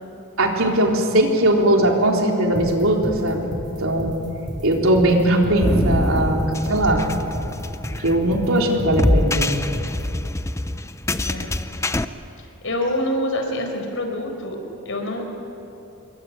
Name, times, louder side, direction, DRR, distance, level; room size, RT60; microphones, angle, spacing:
voice 1, 0.4-3.5 3.8-4.2 4.6-7.1 8.0-9.6, right 1 dB, 70° right, 1 dB, 3.7 m, -19 dB
sound 1, 2.5-10.0, equal, 20° right, 4.0 m, -32 dB
sound 2, 5.6-12.0, left 1 dB, 15° left, 0.6 m, -24 dB
voice 2, 11.2-11.6 12.4-14.6 14.8-15.2, left 1 dB, 65° left, 4 dB, 4.7 m, -26 dB
27.5 x 22.5 x 9.1 m, 2.9 s
head